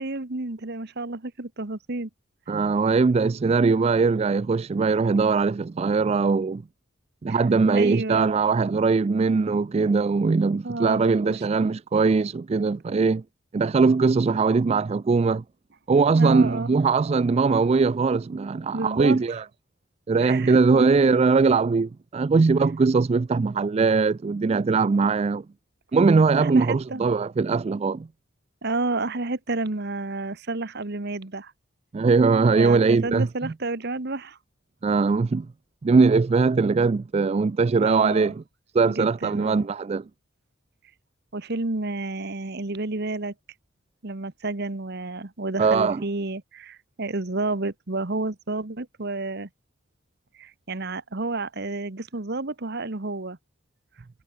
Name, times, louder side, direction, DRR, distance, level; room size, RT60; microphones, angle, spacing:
voice 1, 0.0-2.1 3.1-3.2 7.3-7.4 7.7-8.3 10.6-11.2 14.7-14.8 16.1-16.7 18.7-19.2 20.2-21.0 26.4-27.0 28.6-31.5 32.6-34.4 37.8-38.3 38.9-39.7 41.3-43.3 44.0-49.5 50.4-53.4, right 2 dB, 55° right, 1.4 m, -30 dB
voice 2, 2.5-6.6 7.2-13.2 13.5-15.4 15.9-19.5 20.1-25.4 25.9-28.1 31.9-33.5 34.8-35.5 35.8-38.3 38.7-40.0 45.6-46.0, right 4 dB, 30° right, 0.3 m, -21 dB
head